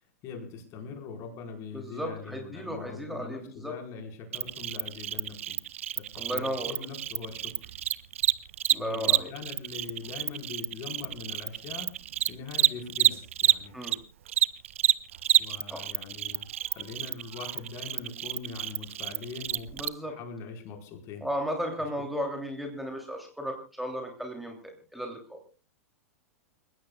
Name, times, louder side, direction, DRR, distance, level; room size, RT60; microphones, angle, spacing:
voice 1, 0.2-5.6 6.0-7.7 8.7-11.9 12.3-13.7 15.4-19.7 20.0-21.3, left 5 dB, 35° left, 4 dB, 4.8 m, -42 dB
voice 2, 1.7-3.7 6.1-6.8 8.7-9.3 13.7-14.0 15.7-15.8 19.7-20.1 21.2-25.4, equal, ahead, 2 dB, 3.0 m, -35 dB
Cricket, 4.3-14.0 14.3-19.9, right 12 dB, 60° right, 0.7 m, -28 dB
29.0 x 16.0 x 2.4 m, 0.36 s
figure-of-eight pair, 95°, 8 cm